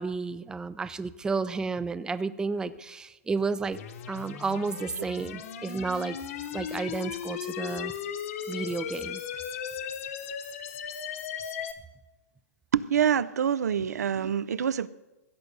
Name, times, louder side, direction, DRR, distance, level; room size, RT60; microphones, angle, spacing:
voice 1, 0.0-3.8 4.1-6.2 6.5-7.9 8.5-9.2, right 4 dB, 10° right, 15 dB, 0.4 m, -31 dB
sound 1, 3.7-11.7, left 8 dB, 55° left, 1.2 m, -37 dB
voice 2, 12.7-14.9, right 8 dB, 80° right, 18 dB, 0.5 m, -26 dB
16.0 x 7.9 x 5.3 m, 1.1 s
hypercardioid pair, 130°, 9 cm